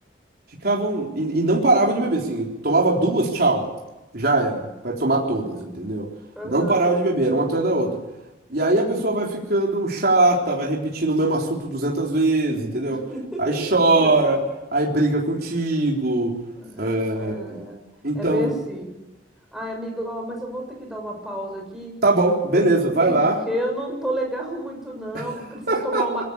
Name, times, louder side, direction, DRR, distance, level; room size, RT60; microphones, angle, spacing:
voice 1, 0.6-3.7 4.1-6.1 6.4-8.0 8.5-13.0 13.4-14.4 14.7-16.4 16.8-17.6 18.0-18.5 22.0-23.4 25.1-25.3 25.7-26.2, right 2 dB, 55° right, -2 dB, 3.8 m, -21 dB
voice 2, 6.4-7.5 12.9-14.4 16.6-17.8 18.1-18.9 19.5-21.9 22.5-22.7 23.0-23.2 23.4-26.2, right 1 dB, ahead, 0 dB, 6.9 m, -31 dB
22.5 x 16.5 x 8.6 m, 1.0 s
head